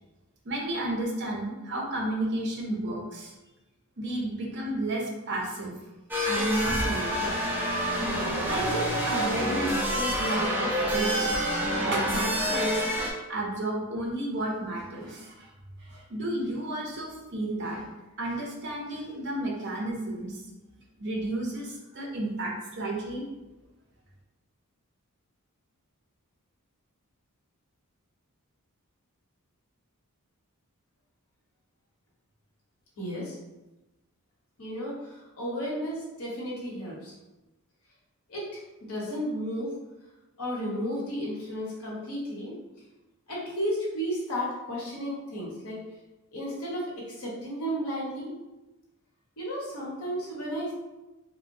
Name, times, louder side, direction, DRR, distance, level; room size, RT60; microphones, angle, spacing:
voice 1, 0.4-3.3 4.0-5.7 6.2-7.5 8.4-11.3 11.8-12.9 13.3-15.5 15.8-20.4 21.0-23.2, right 1 dB, 50° right, -2 dB, 0.6 m, -32 dB
sound 1, 6.1-13.1, equal, 10° right, 0.3 m, -27 dB
voice 2, 33.0-33.4 34.6-37.1 38.3-38.6 38.9-39.7 40.4-42.5 43.3-45.8 46.3-48.3 49.4-50.7, equal, 75° left, -4 dB, 0.9 m, -33 dB
2.9 x 2.1 x 2.6 m, 1.1 s
head